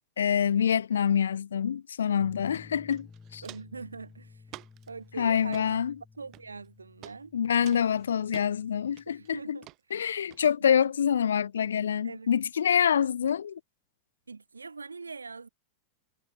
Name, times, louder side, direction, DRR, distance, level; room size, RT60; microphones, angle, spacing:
voice 1, 0.2-3.1 3.3-3.4 5.2-6.0 7.3-9.6 9.9-13.6, left 8 dB, 65° left, 0.4 m, -26 dB
sound 1, 2.2-9.4, left 4 dB, 15° left, 5.6 m, -54 dB
Walk footsteps, 2.5-2.6 2.9-3.8 4.5-4.9 5.4-5.7 6.3-6.7 7.0-7.2 7.6-8.5 9.0-9.3 9.6-9.8 10.3-10.4, right 18 dB, 40° right, 2.5 m, -48 dB
voice 2, 3.4-4.4 4.9-5.8 6.2-7.3 9.1-9.7 10.4-10.5 10.8-10.9 11.2-11.3 12.0-12.3 14.3-15.5, right 4 dB, 75° right, 2.9 m, -42 dB
figure-of-eight pair, 90°, 0 cm